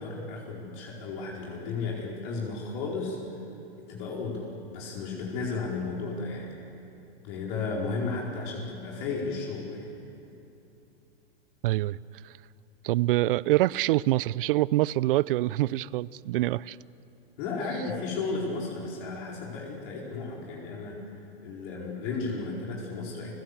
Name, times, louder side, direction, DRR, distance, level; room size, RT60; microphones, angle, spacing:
voice 1, 0.0-3.2 3.8-6.5 7.2-9.9 17.4-21.1 21.4-23.4, left 4 dB, 50° left, -2 dB, 4.6 m, -34 dB
voice 2, 11.6-12.0 12.2-12.3 12.8-16.8, right 16 dB, 60° right, 22 dB, 0.6 m, -25 dB
29.5 x 17.0 x 8.2 m, 2.8 s
hypercardioid pair, 110°, 31 cm